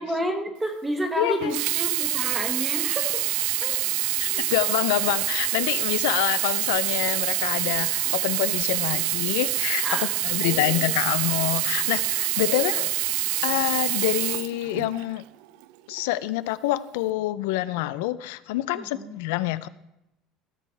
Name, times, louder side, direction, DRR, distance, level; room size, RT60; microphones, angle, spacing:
voice 1, 0.0-3.2 3.5-3.7 4.3-4.5 9.8-10.1 10.4-10.9 12.4-12.8 18.7-19.1, equal, 10° right, 4 dB, 1.4 m, -31 dB
voice 2, 1.2-1.6 4.2-9.9 10.2-12.9 13.4-15.2 15.9-19.7, left 16 dB, 90° left, 15 dB, 0.4 m, -27 dB
Sink (filling or washing), 1.4-15.2 15.9-16.0, right 19 dB, 75° right, 0.3 m, -26 dB
15.5 x 6.3 x 3.3 m, 0.90 s
cardioid pair, 135°, 0 cm